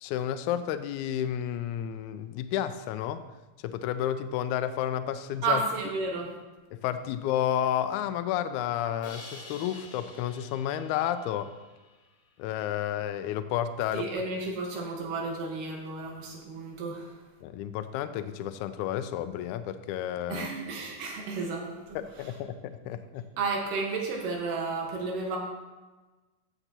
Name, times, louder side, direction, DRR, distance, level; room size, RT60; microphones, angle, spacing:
voice 1, 0.0-3.2 3.6-5.6 6.7-11.5 12.4-14.1 17.4-20.5 22.0-23.3, left 10 dB, 80° left, 10 dB, 1.8 m, -31 dB
voice 2, 5.4-6.3 13.9-17.2 20.3-22.3 23.4-25.4, right 3 dB, 85° right, 0 dB, 3.0 m, -32 dB
Crash cymbal, 9.0-12.1, left 3 dB, 40° left, 2.1 m, -48 dB
14.5 x 7.2 x 2.9 m, 1.2 s
omnidirectional pair, 3.7 m